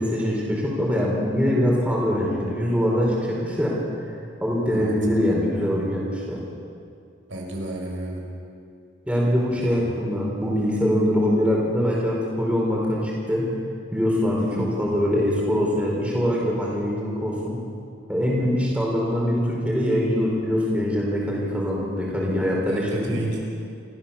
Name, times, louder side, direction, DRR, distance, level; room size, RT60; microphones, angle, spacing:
voice 1, 0.0-6.4 9.1-13.5 13.9-17.6 18.1-23.2, equal, 5° right, -4 dB, 4.6 m, -23 dB
voice 2, 7.3-8.2 9.6-9.7 14.4-14.7 22.7-23.4, right 1 dB, 90° right, -1 dB, 5.6 m, -31 dB
28.0 x 15.0 x 7.2 m, 2.4 s
head